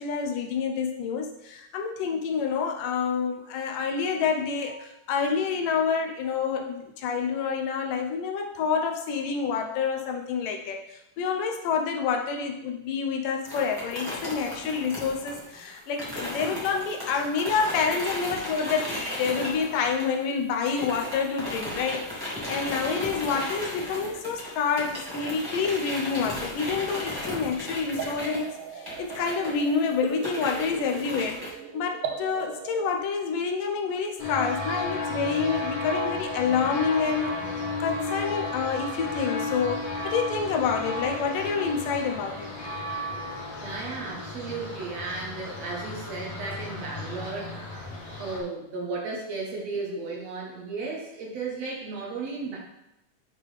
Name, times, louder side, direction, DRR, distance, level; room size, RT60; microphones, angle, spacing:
voice 1, 0.0-31.4 31.7-37.3 37.8-42.5, left 5 dB, 85° left, 3 dB, 2.4 m, -28 dB
sound 1, 13.4-20.4 20.6-31.5, left 1 dB, 30° right, 0.4 m, -35 dB
sound 2, 26.3-33.0, right 7 dB, 85° right, 2.2 m, -39 dB
sound 3, 34.2-48.4, left 2 dB, 55° left, 2.4 m, -33 dB
voice 2, 43.6-47.6 48.2-52.6, right 4 dB, 65° right, -2 dB, 1.9 m, -34 dB
9.9 x 3.7 x 3.2 m, 0.88 s
omnidirectional pair, 3.7 m